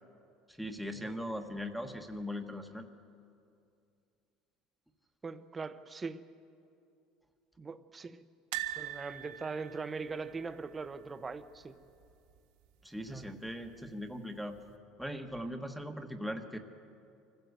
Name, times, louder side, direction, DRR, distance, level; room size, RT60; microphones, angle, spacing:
voice 1, 0.6-2.8 12.8-14.6 15.0-16.6, equal, ahead, 5 dB, 1.3 m, -39 dB
voice 2, 5.2-6.2 7.6-8.2 8.8-11.7 13.1-13.3, right 4 dB, 20° right, 12 dB, 0.9 m, -41 dB
sound 1, 8.5-11.6 11.8-12.0 12.3-12.4 13.6-14.2 14.7-14.8, right 13 dB, 80° right, 1.6 m, -42 dB
24.5 x 15.0 x 8.1 m, 2.6 s
supercardioid pair, 125°, 0 cm